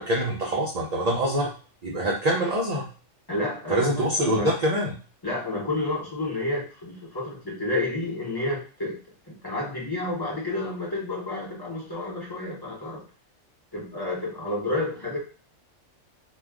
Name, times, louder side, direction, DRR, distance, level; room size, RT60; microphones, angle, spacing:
voice 1, 0.0-1.5 1.8-2.9 3.7-4.9, right 1 dB, 50° right, -2 dB, 0.5 m, -24 dB
voice 2, 3.3-4.5 5.2-9.0 9.3-13.0 13.7-15.2, left 2 dB, 20° left, -4 dB, 0.9 m, -30 dB
2.4 x 2.3 x 3.4 m, 0.36 s
omnidirectional pair, 1.3 m